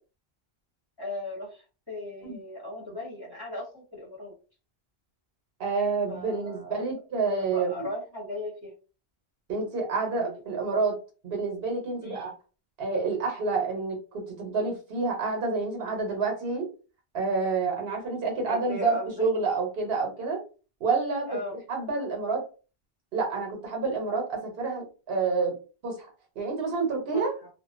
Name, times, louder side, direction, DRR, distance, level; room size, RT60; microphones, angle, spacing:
voice 1, 1.0-1.6 1.9-4.3 6.1-6.8 7.4-8.7 10.2-10.4 12.0-12.3 18.5-19.3 21.3-21.6 27.1-27.2, left 1 dB, 25° left, -6 dB, 1.0 m, -37 dB
voice 2, 5.6-7.9 9.5-11.0 11.2-12.3 12.8-16.7 17.1-20.4 20.8-21.3 21.7-22.4 23.1-25.6 25.8-26.1 26.4-27.3, right 4 dB, 70° right, 1 dB, 1.0 m, -28 dB
2.4 x 2.1 x 2.4 m, 0.35 s
omnidirectional pair, 1.0 m